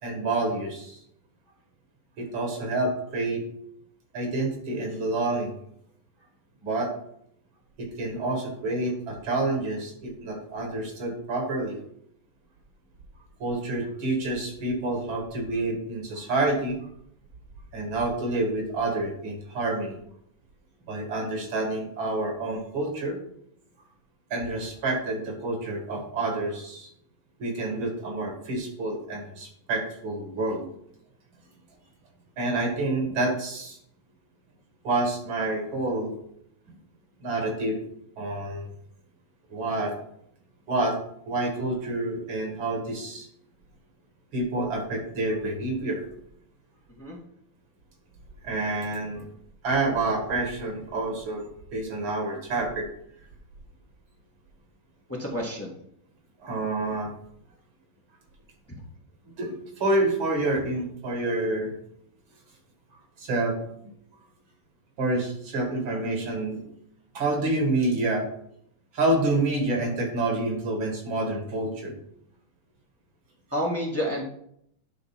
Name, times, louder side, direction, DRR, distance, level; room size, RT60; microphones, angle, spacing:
voice 1, 0.0-1.0 2.2-3.5 4.1-5.5 6.6-6.9 7.8-11.8 13.4-16.9 17.7-20.0 20.9-23.2 24.3-26.9 27.4-30.7 32.4-33.8 34.8-36.1 37.2-37.8 38.2-38.6 39.5-39.9 40.7-41.0 41.3-43.3 44.3-46.0 48.4-49.3 49.6-52.9 56.4-57.1 59.3-61.7 63.2-63.6 65.0-66.6 67.1-68.3 68.9-72.0, right 2 dB, 85° right, 2 dB, 2.6 m, -28 dB
voice 2, 55.2-55.7 73.5-74.3, equal, 10° left, -2 dB, 1.3 m, -29 dB
10.5 x 3.9 x 5.7 m, 0.72 s
omnidirectional pair, 2.1 m